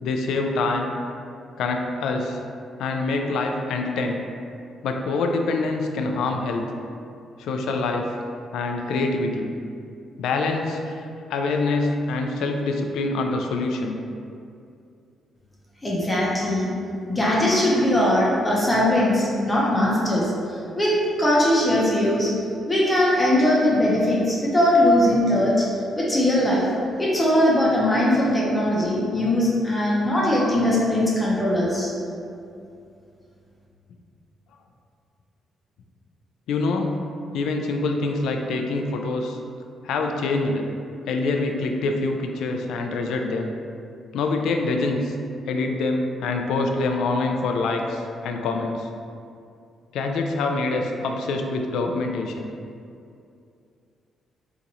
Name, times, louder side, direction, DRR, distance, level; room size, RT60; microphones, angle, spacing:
voice 1, 0.0-0.9 1.6-2.4 2.8-4.3 4.8-6.7 7.4-8.1 8.5-9.5 10.2-11.0 11.3-14.0 36.5-37.0 37.3-39.4 39.8-40.7 41.1-43.5 44.1-45.1 45.5-48.9 49.9-52.5, left 3 dB, 85° left, 3 dB, 0.3 m, -25 dB
voice 2, 15.8-16.7 17.1-22.3 22.7-25.7 26.0-26.6 27.0-31.9, left 1 dB, 15° left, -6 dB, 0.7 m, -20 dB
2.8 x 2.5 x 4.0 m, 2.5 s
cardioid pair, 105°, 0 cm